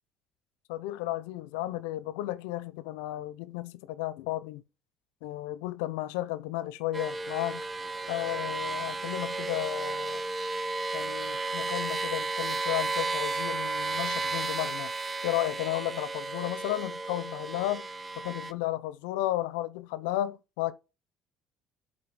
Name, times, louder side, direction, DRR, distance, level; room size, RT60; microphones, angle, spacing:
voice 1, 0.7-4.6 5.2-7.7 8.1-10.2 10.9-14.9 15.2-17.9 18.2-20.7, left 15 dB, 85° left, 0.6 m, -33 dB
sound 1, 6.9-18.5, right 3 dB, 25° right, 0.7 m, -33 dB
7.6 x 4.4 x 6.1 m
supercardioid pair, 75°, 0 cm